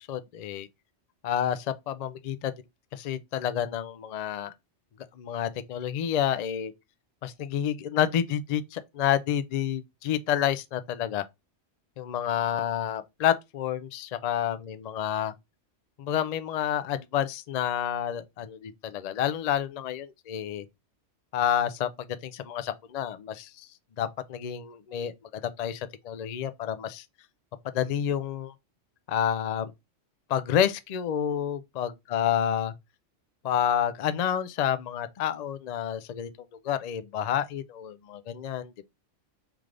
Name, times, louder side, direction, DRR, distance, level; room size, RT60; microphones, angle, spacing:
voice 1, 0.1-0.7 1.2-2.5 2.9-4.5 5.2-6.7 7.2-11.2 12.0-15.3 16.0-20.6 21.3-23.7 24.0-27.0 27.7-28.5 29.1-29.7 30.3-32.7 33.4-36.3 36.6-38.8, left 9 dB, 85° left, 0.3 m, -29 dB
3.5 x 3.3 x 3.7 m
omnidirectional pair, 1.3 m